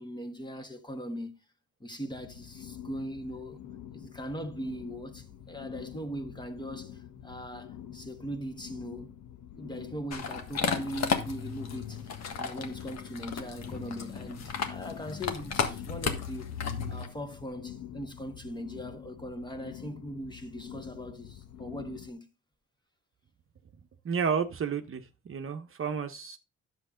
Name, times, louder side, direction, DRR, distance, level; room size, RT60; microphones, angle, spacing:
voice 1, 0.0-1.4 1.8-3.6 3.9-9.1 9.6-22.3, equal, 15° left, 1.7 m, -40 dB
sound 1, 2.1-22.1, left 11 dB, 75° left, 1.2 m, -47 dB
sound 2, 10.1-17.1, left 6 dB, 60° left, 1.6 m, -34 dB
voice 2, 24.0-26.4, right 6 dB, 45° right, 1.0 m, -31 dB
10.5 x 7.3 x 3.8 m
cardioid pair, 90°, 30 cm